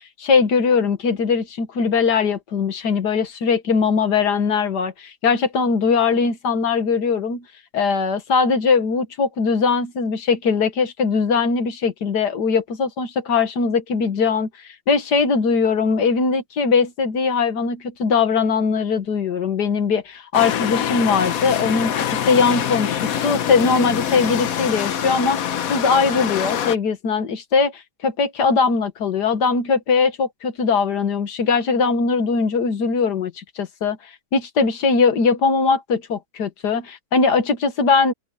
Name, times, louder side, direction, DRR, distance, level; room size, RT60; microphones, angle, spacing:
voice 1, 0.2-7.4 7.7-25.4 25.7-38.1, left 5 dB, 85° left, 2.1 m, -20 dB
sound 1, 20.3-26.8, left 9 dB, 65° left, 1.3 m, -24 dB
open air
omnidirectional pair, 1.7 m